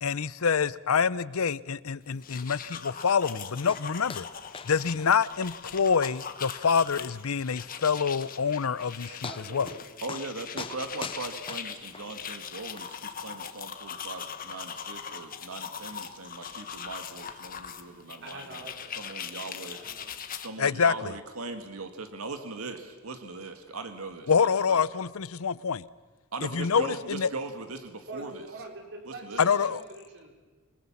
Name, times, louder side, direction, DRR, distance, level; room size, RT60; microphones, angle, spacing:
voice 1, 0.0-4.3 4.6-9.7 20.6-21.1 24.3-25.8 26.4-27.3 29.4-29.8, left 6 dB, 80° left, 0.6 m, -26 dB
sound 1, 2.1-20.5, left 7 dB, 40° left, 1.4 m, -41 dB
sound 2, 3.7-3.8 4.1-4.3 4.5-4.7 5.0-5.1 5.5-5.6 6.0-6.1 6.6-6.7 8.4-8.5 8.8-8.9 9.2-9.8 10.1-10.3 10.6-12.1 12.8-12.9, left 5 dB, 25° left, 0.6 m, -40 dB
voice 2, 9.2-9.8 18.2-18.9 19.7-20.1 28.1-30.3, right 2 dB, 60° right, 5.0 m, -44 dB
voice 3, 10.0-18.6 18.9-19.8 20.3-24.8 26.3-28.4 29.1-29.5, right 3 dB, 90° right, 1.8 m, -39 dB
27.5 x 21.5 x 7.2 m
head